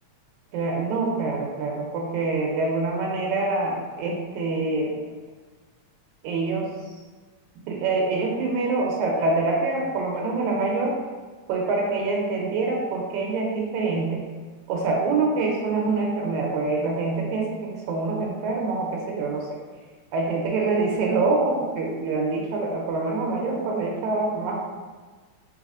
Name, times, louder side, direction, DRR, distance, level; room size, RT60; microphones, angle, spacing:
voice 1, 0.5-4.9 6.2-6.7 7.7-11.0 11.5-14.2 14.7-19.6 20.1-24.6, right 3 dB, 85° right, 0 dB, 2.0 m, -25 dB
4.1 x 3.7 x 2.4 m, 1.4 s
omnidirectional pair, 3.3 m